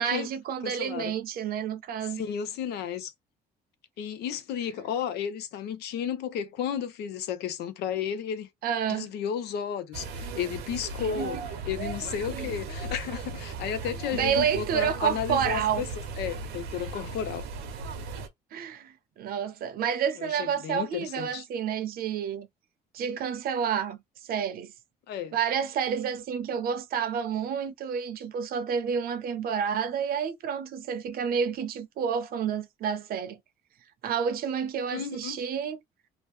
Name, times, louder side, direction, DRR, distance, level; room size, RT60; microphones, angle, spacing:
voice 1, 0.0-2.2 8.6-9.1 11.0-11.4 12.3-12.5 14.1-15.9 18.5-22.5 22.9-24.0 24.3-24.7 25.3-33.4 34.0-35.8, right 7 dB, 60° right, 0.7 m, -29 dB
voice 2, 0.6-1.1 2.1-3.1 4.0-8.5 8.9-11.4 11.7-17.4 20.2-21.4 25.1-25.3 34.9-35.4, left 8 dB, 75° left, 0.7 m, -33 dB
sound 1, 9.9-18.3, right 3 dB, 85° right, 0.9 m, -37 dB
2.9 x 2.1 x 3.4 m
cardioid pair, 110°, 17 cm